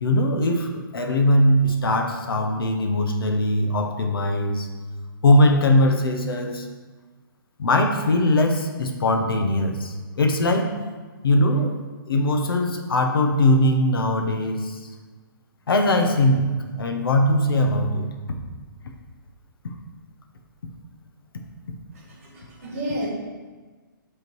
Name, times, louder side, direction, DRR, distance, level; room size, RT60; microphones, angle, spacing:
voice 1, 0.0-4.7 5.2-6.7 7.6-10.7 11.2-11.8 12.1-14.9 15.7-18.1 19.6-19.7, left 1 dB, 85° left, 4 dB, 1.0 m, -20 dB
voice 2, 21.9-23.1, equal, 40° right, -2 dB, 1.7 m, -31 dB
8.0 x 3.7 x 4.6 m, 1.4 s
hypercardioid pair, 175°, 12 cm